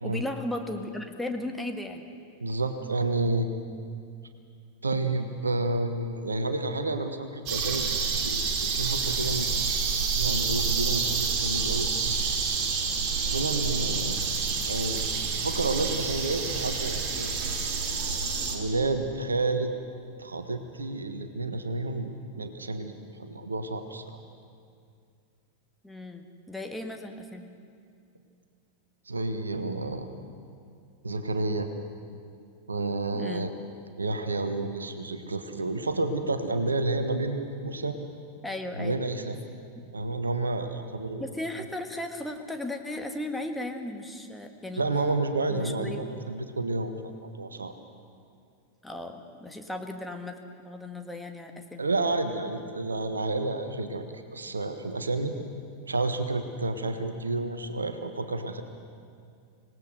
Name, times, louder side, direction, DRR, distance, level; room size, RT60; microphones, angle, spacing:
voice 1, 0.0-2.0 25.8-27.5 33.1-33.5 38.4-39.0 41.2-44.8 45.5-46.0 48.8-51.8, left 1 dB, 5° left, 4 dB, 1.7 m, -36 dB
voice 2, 2.4-3.5 4.8-8.4 8.7-9.6 10.1-11.9 13.2-14.2 14.7-15.0 15.4-17.3 18.5-19.7 20.2-22.1 22.4-22.9 23.2-24.2 29.1-30.1 31.0-31.7 32.7-33.5 34.0-38.0 38.7-39.4 39.9-41.2 44.8-47.1 47.4-47.7 51.8-54.1 54.3-55.3 55.9-58.6, right 2 dB, 75° right, 8 dB, 1.4 m, -30 dB
sound 1, 7.5-18.6, right 5 dB, 35° right, 3.0 m, -28 dB
26.0 x 18.5 x 6.5 m, 2.3 s
figure-of-eight pair, 90°, 0 cm